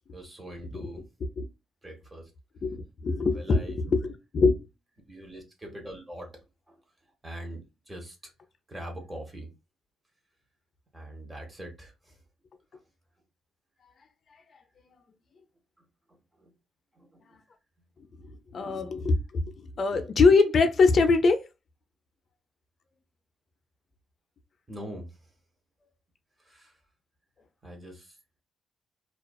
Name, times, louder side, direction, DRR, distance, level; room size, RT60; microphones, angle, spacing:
voice 1, 0.1-1.1 1.8-2.3 3.3-3.8 5.1-8.3 8.7-9.5 10.9-12.2 12.7-12.9 15.8-16.5 16.9-17.4 18.7-18.9 24.7-25.3 26.4-26.8 27.6-28.2, right 1 dB, 20° right, 1.0 m, -43 dB
voice 2, 2.6-3.6 3.9-4.6 18.5-21.4, left 4 dB, 50° left, 0.4 m, -23 dB
2.4 x 2.3 x 2.2 m
cardioid pair, 90°, 0 cm